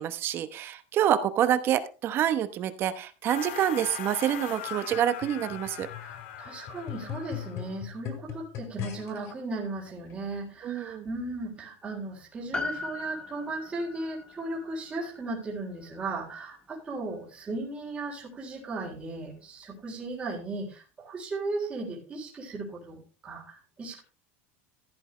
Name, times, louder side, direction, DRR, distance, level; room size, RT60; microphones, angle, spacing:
voice 1, 0.0-5.9 10.6-11.0, right 10 dB, 40° right, 12 dB, 0.9 m, -27 dB
sound 1, 3.3-7.8, left 9 dB, 80° left, 1.8 m, -40 dB
sound 2, 4.9-9.3 10.1-10.2, left 12 dB, 45° left, 2.3 m, -40 dB
voice 2, 5.9-24.0, right 2 dB, 20° right, -2 dB, 3.7 m, -36 dB
Piano, 12.5-17.1 17.4-17.5, left 3 dB, 15° left, 1.7 m, -40 dB
14.5 x 8.9 x 3.2 m, 0.33 s
supercardioid pair, 145°, 6 cm